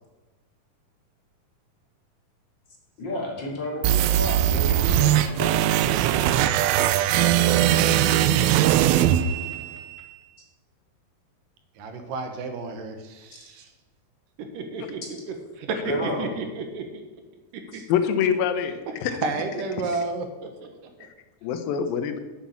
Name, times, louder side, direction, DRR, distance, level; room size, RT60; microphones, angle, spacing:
voice 1, 3.0-5.5 5.8-5.9 15.8-16.4 17.7-17.8 19.8-20.0, left 1 dB, 35° left, -2 dB, 2.8 m, -31 dB
sound 1, 3.8-9.9, right 12 dB, 85° right, 2.4 m, -20 dB
Laughter, 4.5-10.2, left 5 dB, 55° left, 2.1 m, -45 dB
voice 2, 11.8-13.7 14.4-15.0 15.3-17.0 17.7-17.9 19.2-20.9, right 3 dB, 70° right, 6 dB, 2.6 m, -32 dB
voice 3, 17.9-19.1 21.0-21.1 21.4-22.2, left 8 dB, 80° left, 9 dB, 2.6 m, -25 dB
8.9 x 7.2 x 7.2 m, 1.2 s
omnidirectional pair, 4.1 m